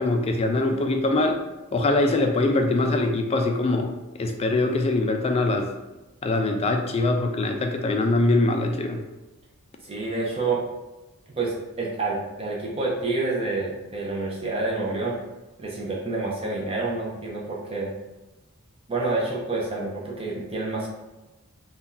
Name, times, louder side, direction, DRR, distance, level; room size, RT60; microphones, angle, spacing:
voice 1, 0.0-1.4 1.7-5.7 6.2-9.0, left 2 dB, 25° left, 4 dB, 0.3 m, -23 dB
voice 2, 9.8-10.6 11.3-15.2 15.6-17.9 18.9-20.9, right 3 dB, 25° right, -3 dB, 0.5 m, -28 dB
2.6 x 2.3 x 3.7 m, 1.1 s
head